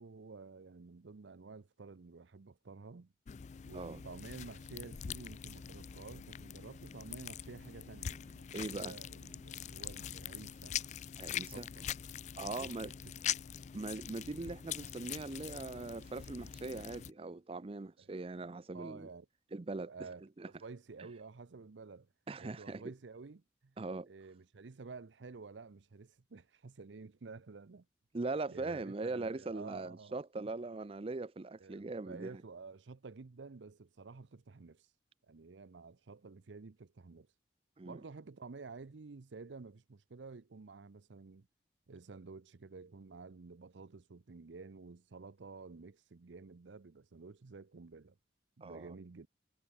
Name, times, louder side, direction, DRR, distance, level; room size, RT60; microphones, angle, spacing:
voice 1, 0.0-3.1 3.6-10.7 11.5-11.9 12.5-13.1 18.0-18.1 18.7-19.3 19.8-22.1 22.4-23.8 24.1-27.9 28.5-30.1 31.6-34.9 35.3-37.3 37.8-41.5 41.9-48.2 48.6-49.3, right 4 dB, 85° right, 0.6 m, -51 dB
sound 1, 3.3-17.1, left 9 dB, 40° left, 0.3 m, -43 dB
voice 2, 8.5-8.9 11.2-11.7 12.4-12.9 13.7-19.1 19.5-20.1 20.4-20.5 22.3-22.9 23.8-24.1 28.1-32.4 37.8-38.0 48.6-49.0, right 3 dB, 30° right, 0.5 m, -41 dB
head